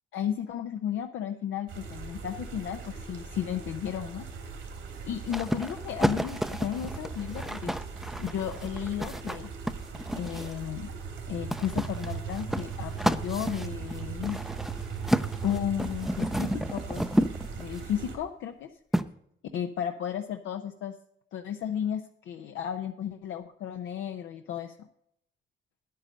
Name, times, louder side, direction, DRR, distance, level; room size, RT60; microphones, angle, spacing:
voice 1, 0.1-4.3 5.0-7.8 8.2-9.5 10.1-10.9 11.3-14.4 15.4-17.2 17.5-18.7 19.5-20.9 21.3-24.9, left 9 dB, 80° left, 5 dB, 0.8 m, -34 dB
sound 1, 1.7-18.2, right 5 dB, 80° right, 3.3 m, -39 dB
sound 2, 5.3-10.6 11.5-17.8 18.9-19.1, equal, ahead, 0.6 m, -31 dB
9.8 x 9.6 x 5.3 m, 0.72 s
cardioid pair, 90°, 20 cm